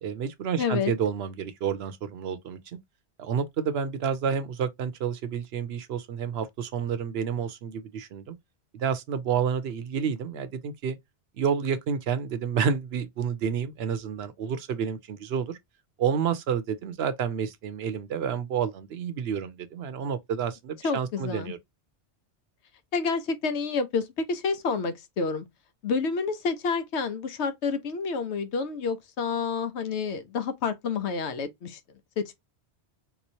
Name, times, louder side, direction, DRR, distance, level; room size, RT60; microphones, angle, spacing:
voice 1, 0.0-2.8 3.2-8.3 8.7-11.0 11.4-15.6 16.0-21.6, right 7 dB, 70° right, 0.8 m, -29 dB
voice 2, 0.6-0.9 20.8-21.5 22.9-25.5 25.8-31.8 32.2-32.3, left 5 dB, 80° left, 1.0 m, -29 dB
3.6 x 3.0 x 2.7 m
omnidirectional pair, 1.2 m